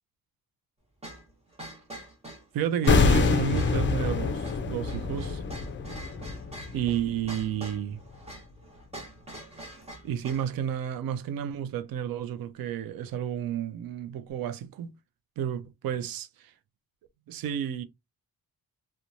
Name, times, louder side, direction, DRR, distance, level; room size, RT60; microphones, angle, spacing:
sound 1, 1.0-10.5, right 1 dB, 15° right, 1.0 m, -45 dB
voice 1, 2.5-5.4 6.7-8.0 10.0-14.9 15.4-16.5 17.3-17.8, right 9 dB, 70° right, 0.5 m, -31 dB
sound 2, 2.9-7.9 8.1-8.3, left 4 dB, 35° left, 0.4 m, -26 dB
3.0 x 2.2 x 2.5 m
wide cardioid pair, 140°, 37 cm